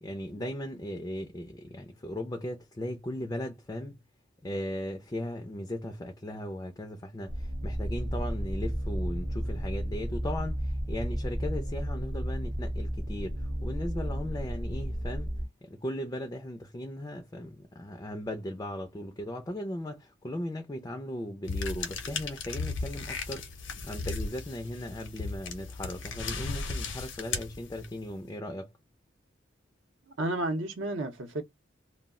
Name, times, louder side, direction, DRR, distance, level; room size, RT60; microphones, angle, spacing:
voice 1, 0.0-4.0 4.4-15.3 15.7-28.7, left 1 dB, 20° left, 0.3 m, -37 dB
sound 1, 7.3-15.4, equal, 30° right, 0.6 m, -33 dB
sound 2, 21.5-28.1, left 4 dB, 70° left, 0.6 m, -36 dB
voice 2, 30.1-31.4, right 2 dB, 70° right, 0.6 m, -32 dB
2.3 x 2.0 x 3.5 m
head